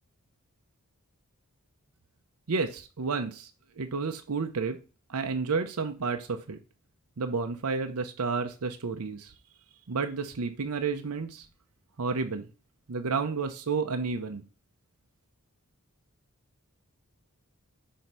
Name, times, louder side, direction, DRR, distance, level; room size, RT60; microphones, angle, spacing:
voice 1, 2.5-3.5 3.8-4.8 5.1-6.6 7.2-9.3 9.9-11.5 12.0-12.5 12.9-14.4, right 4 dB, 75° right, 6 dB, 0.7 m, -31 dB
6.1 x 3.8 x 5.4 m, 0.34 s
head